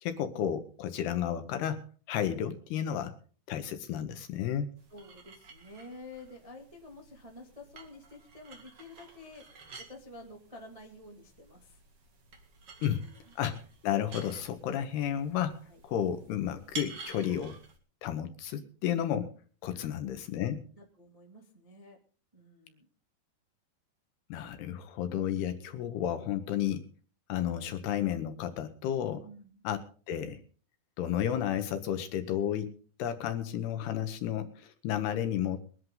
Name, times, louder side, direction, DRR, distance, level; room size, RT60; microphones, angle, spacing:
voice 1, 0.0-1.8 2.1-3.1 3.5-4.7 12.8-13.0 13.4-13.6 13.8-17.6 18.0-19.3 19.6-20.6 24.3-26.9 27.3-29.2 29.6-29.8 30.1-30.4 31.0-35.8, left 10 dB, 70° left, 9 dB, 2.7 m, -32 dB
sound 1, 4.8-17.8, right 4 dB, 40° right, 2.2 m, -50 dB
voice 2, 4.9-11.8 12.8-13.3 15.7-15.8 19.7-20.1 20.7-22.0 22.3-22.9 29.1-29.6, left 2 dB, 65° right, 0 dB, 0.3 m, -50 dB
22.0 x 11.0 x 3.9 m, 0.39 s
omnidirectional pair, 5.5 m